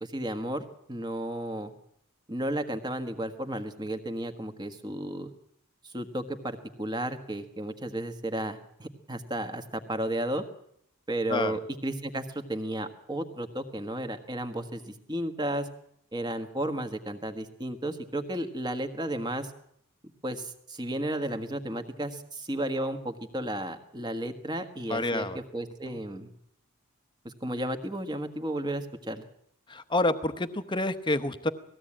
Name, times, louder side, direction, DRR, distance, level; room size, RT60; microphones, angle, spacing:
voice 1, 0.0-1.7 2.3-5.3 5.8-10.4 11.1-15.7 16.1-19.5 20.0-26.3 27.2-29.3, right 1 dB, 20° right, 7 dB, 1.5 m, -33 dB
voice 2, 24.9-25.4 29.7-31.5, left 2 dB, 20° left, 10 dB, 0.9 m, -28 dB
19.0 x 16.0 x 8.7 m, 0.72 s
head